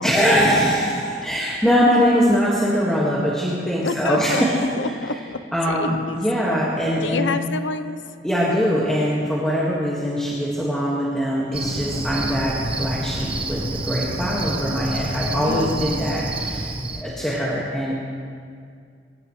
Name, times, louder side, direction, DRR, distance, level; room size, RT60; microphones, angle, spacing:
voice 1, 0.0-4.6 5.5-7.3 8.2-16.7 16.9-17.9, equal, 5° left, -7 dB, 1.9 m, -22 dB
voice 2, 3.8-4.4 4.8-5.4 5.7-6.2 7.0-8.0 15.3-16.0, left 3 dB, 75° left, 10 dB, 0.8 m, -28 dB
Cricket, 11.5-17.0, right 2 dB, 30° right, 1.1 m, -28 dB
23.0 x 15.5 x 3.3 m, 2.2 s
head